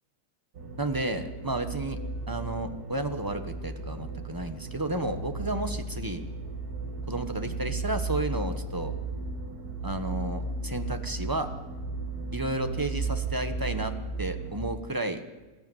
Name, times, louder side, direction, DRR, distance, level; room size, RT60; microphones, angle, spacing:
sound 1, 0.6-14.6, right 3 dB, 75° right, 2.2 m, -35 dB
voice 1, 0.8-2.0 2.3-6.2 7.1-8.9 9.8-11.5 12.3-13.9 14.2-15.2, right 2 dB, 15° right, 7 dB, 1.3 m, -32 dB
22.0 x 14.0 x 9.4 m, 1.2 s
omnidirectional pair, 1.6 m